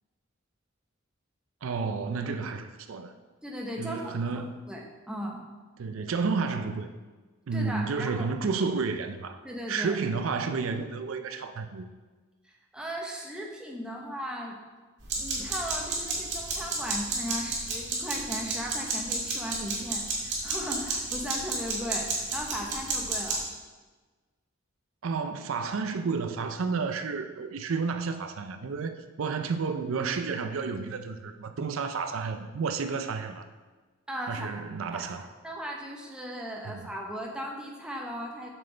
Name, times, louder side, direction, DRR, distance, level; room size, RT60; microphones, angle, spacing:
voice 1, 1.6-3.1 3.8-4.7 5.8-6.9 7.5-9.4 9.7-11.9 25.0-33.5 34.3-35.3 36.6-36.9, right 4 dB, 80° right, 0.5 m, -31 dB
voice 2, 3.4-5.4 7.5-8.3 9.4-10.0 12.7-14.6 15.2-23.4 34.1-35.1 35.4-38.5, equal, 5° right, 0.9 m, -37 dB
sound 1, 15.0-23.4, right 3 dB, 60° right, 2.1 m, -32 dB
6.4 x 6.2 x 3.9 m
head